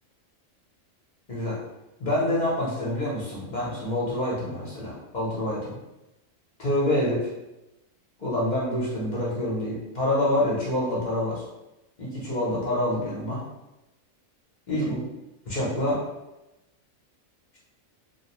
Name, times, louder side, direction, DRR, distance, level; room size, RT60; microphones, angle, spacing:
voice 1, 1.3-1.6 2.0-5.8 6.6-7.3 8.2-11.4 12.0-13.4 14.7-15.0 15.5-16.0, left 1 dB, 45° left, -6 dB, 0.6 m, -27 dB
2.6 x 2.0 x 2.8 m, 0.97 s
omnidirectional pair, 1.4 m